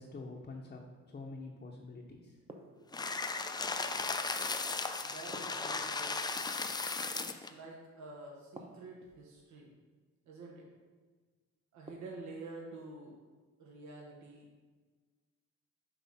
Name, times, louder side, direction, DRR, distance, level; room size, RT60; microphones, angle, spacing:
voice 1, 0.0-2.4, left 3 dB, 30° left, -1 dB, 0.7 m, -47 dB
sound 1, 2.5-3.3 5.3-6.4 8.5-9.3 11.9-12.5, right 1 dB, 20° right, 0.7 m, -52 dB
sound 2, 2.9-7.5, left 4 dB, 15° left, 0.3 m, -36 dB
voice 2, 5.0-6.6 7.2-9.7 10.3-10.7 11.7-13.2 13.6-14.7, right 3 dB, 70° right, -1 dB, 1.1 m, -49 dB
5.8 x 3.3 x 5.4 m, 1.4 s
cardioid pair, 90°, 30 cm